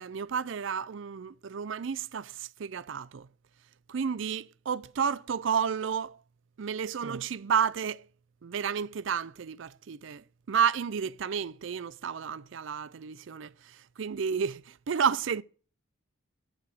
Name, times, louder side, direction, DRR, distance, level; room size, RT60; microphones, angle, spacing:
voice 1, 0.0-3.3 3.9-6.2 6.6-8.1 8.4-15.4, right 7 dB, 70° right, 0.4 m, -31 dB
11.5 x 4.9 x 7.6 m
head